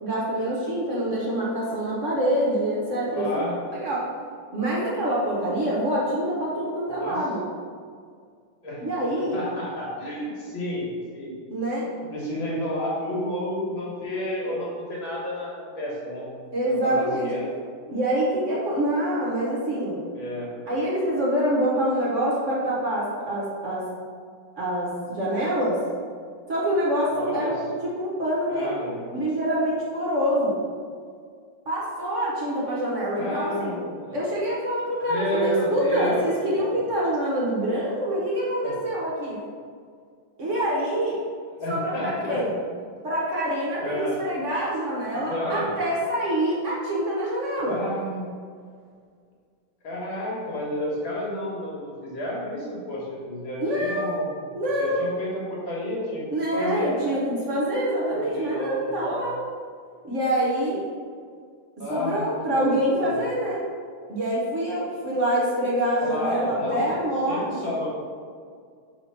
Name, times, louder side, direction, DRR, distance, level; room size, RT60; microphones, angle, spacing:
voice 1, 0.0-3.4 3.7-4.1 4.5-7.4 8.8-9.4 11.5-11.9 16.5-17.3 17.9-20.0 20.7-23.9 24.5-25.8 26.5-28.7 29.1-30.6 31.7-33.7 34.1-39.4 40.4-41.2 41.7-42.6 43.0-47.8 53.6-54.2 54.5-55.1 56.3-59.4 60.0-60.8 61.9-63.6 64.1-67.4, right 1 dB, 45° right, -5 dB, 1.2 m, -26 dB
voice 2, 3.1-3.5 6.9-7.2 8.6-8.8 9.2-10.8 11.1-11.4 11.7-11.8 12.1-16.3 16.6-17.5 20.1-20.5 27.1-27.6 28.5-29.1 33.1-34.2 35.1-36.2 36.5-36.7 38.6-38.8 41.5-42.4 43.8-44.2 45.3-45.7 47.7-48.3 49.8-54.3 54.8-56.2 56.5-57.1 58.1-59.1 61.8-63.1 66.0-66.9 67.3-67.9, left 1 dB, 80° left, -5 dB, 2.3 m, -31 dB
4.5 x 4.2 x 5.7 m, 2.1 s
omnidirectional pair, 2.1 m